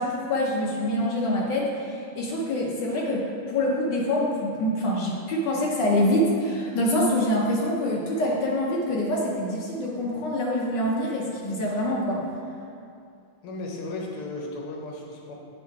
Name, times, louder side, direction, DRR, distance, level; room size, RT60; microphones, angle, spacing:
voice 1, 0.0-12.2, left 1 dB, 65° left, -3 dB, 1.3 m, -25 dB
voice 2, 13.4-15.3, left 2 dB, 80° left, -1 dB, 1.8 m, -35 dB
8.3 x 3.7 x 4.6 m, 2.5 s
omnidirectional pair, 2.4 m